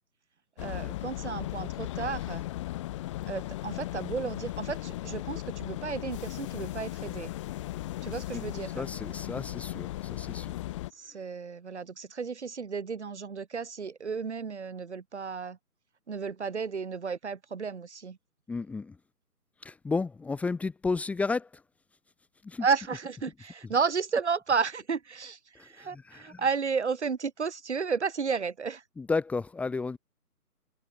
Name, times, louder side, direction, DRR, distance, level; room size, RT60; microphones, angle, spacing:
sound 1, 0.6-10.9, left 15 dB, 20° left, 3.9 m, -37 dB
voice 1, 0.6-2.4 3.3-7.3 8.0-8.9 11.0-15.6 16.1-18.2 22.6-28.8, right 5 dB, 45° right, 5.0 m, -32 dB
voice 2, 8.8-10.6 18.5-19.0 19.6-21.5 22.4-22.7 25.6-26.4 29.0-30.0, left 4 dB, 5° left, 3.4 m, -32 dB
figure-of-eight pair, 150°, 47 cm